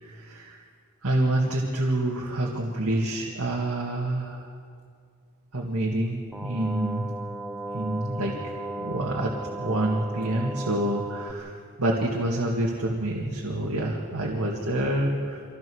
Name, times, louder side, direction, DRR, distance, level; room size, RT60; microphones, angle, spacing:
voice 1, 0.0-0.6 1.0-4.5 5.5-7.1 7.7-8.3 8.8-15.4, right 1 dB, 90° right, -2 dB, 2.1 m, -27 dB
sound 1, 6.3-11.3, right 2 dB, 5° right, 0.6 m, -35 dB
25.5 x 16.5 x 6.4 m, 2.1 s
head